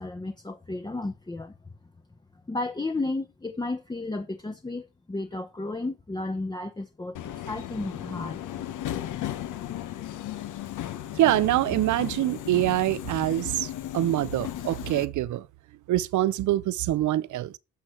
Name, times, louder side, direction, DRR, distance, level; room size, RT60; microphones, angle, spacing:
voice 1, 0.0-1.5 2.5-8.4, left 2 dB, 15° left, 0.9 m, -33 dB
Subway metro underground, 7.1-15.0, left 12 dB, 80° left, 1.2 m, -35 dB
voice 2, 11.2-15.5 15.9-17.6, right 14 dB, 75° right, 0.7 m, -25 dB
12.5 x 6.1 x 4.5 m
cardioid pair, 90°, 30 cm